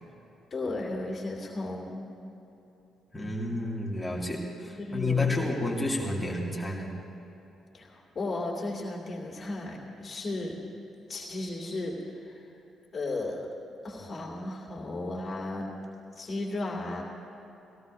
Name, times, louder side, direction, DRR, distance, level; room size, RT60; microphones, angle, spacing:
voice 1, 0.5-2.1 4.7-5.5 7.7-10.5 11.1-12.4 12.9-13.5 13.8-15.7 16.2-17.0, left 2 dB, 35° left, -2 dB, 2.6 m, -35 dB
voice 2, 3.1-7.0, left 2 dB, 10° left, -2 dB, 2.5 m, -30 dB
20.5 x 17.5 x 2.8 m, 3.0 s
figure-of-eight pair, 40°, 0 cm